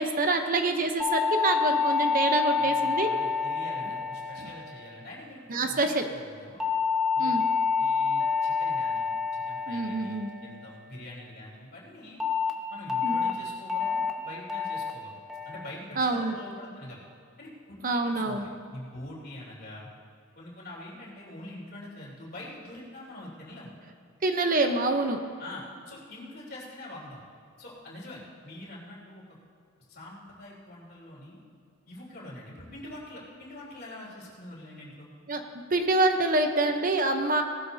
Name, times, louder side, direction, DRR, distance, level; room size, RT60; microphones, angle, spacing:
voice 1, 0.0-3.1 5.5-6.1 7.2-7.4 9.7-10.3 13.0-13.2 16.0-16.3 17.8-18.5 24.2-25.2 35.3-35.4 35.7-37.4, right 2 dB, 45° right, 5 dB, 0.8 m, -26 dB
sound 1, 1.0-5.5 6.6-11.1 12.2-12.5 12.9-13.3 13.7-14.1 14.5-14.9 15.3-15.7 16.1-16.5, left 5 dB, 5° right, 0.9 m, -28 dB
voice 2, 2.6-6.6 7.1-7.3 7.8-12.2 12.7-15.2 15.5-17.0 17.4-19.9 20.4-23.7 25.4-27.2 27.6-29.2 29.9-31.4 31.9-35.1, left 1 dB, 50° left, -5 dB, 3.5 m, -44 dB
19.0 x 13.0 x 2.8 m, 2.3 s
head